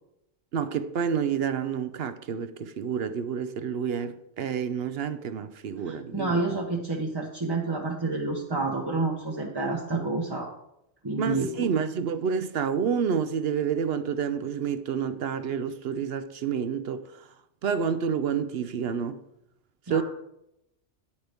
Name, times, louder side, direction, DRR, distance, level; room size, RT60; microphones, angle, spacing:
voice 1, 0.5-6.6 11.2-17.3 17.6-19.2 19.9-20.0, right 7 dB, 65° right, 0.8 m, -29 dB
voice 2, 5.8-10.5 11.0-11.5 19.9-20.0, right 3 dB, 25° right, 0.8 m, -29 dB
9.7 x 9.3 x 3.5 m
omnidirectional pair, 1.2 m